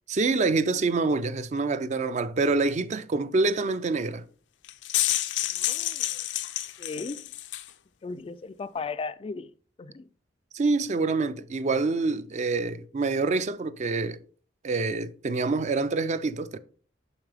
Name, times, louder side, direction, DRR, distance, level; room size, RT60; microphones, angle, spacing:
voice 1, 0.1-4.2 10.5-14.2 14.6-16.6, right 3 dB, 40° right, 0.4 m, -26 dB
sound 1, 4.6-7.7, left 14 dB, 85° left, 0.5 m, -29 dB
voice 2, 5.5-6.2 6.8-7.2 8.0-9.5 9.8-10.1, left 4 dB, 30° left, 0.3 m, -36 dB
7.1 x 5.4 x 3.3 m
head